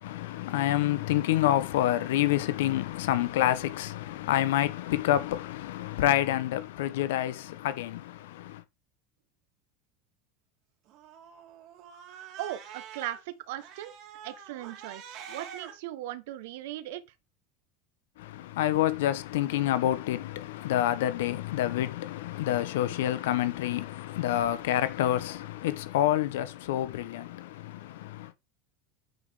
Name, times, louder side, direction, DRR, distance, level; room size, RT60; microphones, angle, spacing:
voice 1, 0.0-8.6 18.2-28.3, left 13 dB, 90° left, 1.0 m, -28 dB
Cat, 10.9-13.2 13.6-15.7, right 8 dB, 50° right, 2.8 m, -46 dB
voice 2, 12.4-13.9 14.2-17.0, right 14 dB, 80° right, 1.2 m, -38 dB
9.4 x 4.9 x 3.7 m
supercardioid pair, 145°, 0 cm